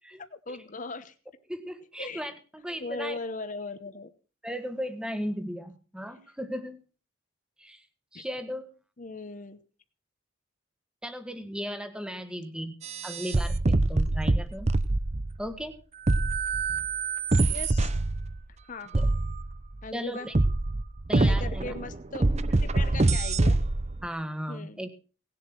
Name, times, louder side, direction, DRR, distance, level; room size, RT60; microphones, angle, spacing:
voice 1, 0.3-1.1 2.0-2.3 2.8-4.1 8.1-8.2 9.0-9.6 17.5-17.9 18.7-19.1 19.8-20.3 21.2-22.3 22.6-23.6 24.5-24.8, left 3 dB, 40° left, 10 dB, 0.9 m, -38 dB
voice 2, 1.5-3.2 4.4-6.8 7.6-7.8 8.1-8.7 11.0-12.8 13.0-14.7 15.4-15.8 18.9-19.1 19.9-20.3 21.1-21.7 22.5-22.6 24.0-24.9, equal, 5° right, 9 dB, 1.4 m, -36 dB
sound 1, 12.8-15.5 16.1-18.4 18.9-19.7 20.3-24.1, right 2 dB, 30° right, 0.6 m, -25 dB
18.5 x 7.7 x 6.0 m, 0.37 s
head